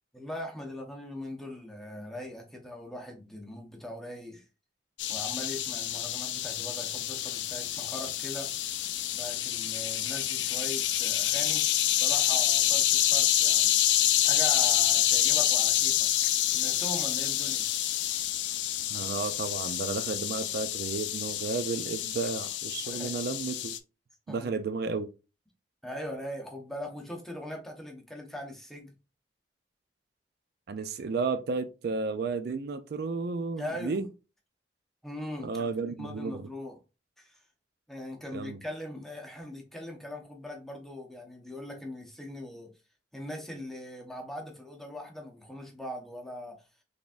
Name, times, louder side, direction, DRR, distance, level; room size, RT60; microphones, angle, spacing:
voice 1, 0.1-4.4 5.1-8.5 9.1-13.7 14.2-16.1 16.5-17.6 22.8-23.2 24.3-24.5 25.8-28.9 33.6-34.0 35.0-35.7 36.0-36.8 37.2-37.4 37.9-42.7 43.1-46.6, left 1 dB, ahead, 0.9 m, -40 dB
sound 1, 5.0-23.8, left 12 dB, 80° left, 0.4 m, -27 dB
voice 2, 18.9-23.7 24.3-25.1 30.7-34.1 35.4-36.5 38.3-38.6, right 4 dB, 60° right, 0.4 m, -33 dB
4.0 x 3.4 x 2.5 m
head